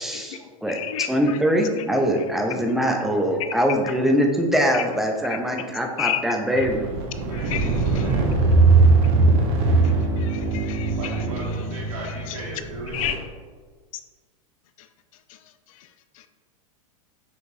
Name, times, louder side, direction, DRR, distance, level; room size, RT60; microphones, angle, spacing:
voice 1, 0.0-0.8 1.1-6.9, equal, ahead, 0.4 m, -22 dB
voice 2, 0.7-1.4 6.0-6.2 6.6-6.7 7.3-8.1 10.3-10.9 12.9-13.1, left 13 dB, 70° left, 0.4 m, -30 dB
sound 1, 6.6-13.1, right 3 dB, 50° right, 0.8 m, -20 dB
voice 3, 6.8-7.6 7.9-8.3 11.0-13.0, right 2 dB, 75° right, 1.2 m, -37 dB
6.1 x 2.9 x 2.7 m
hypercardioid pair, 125°, 19 cm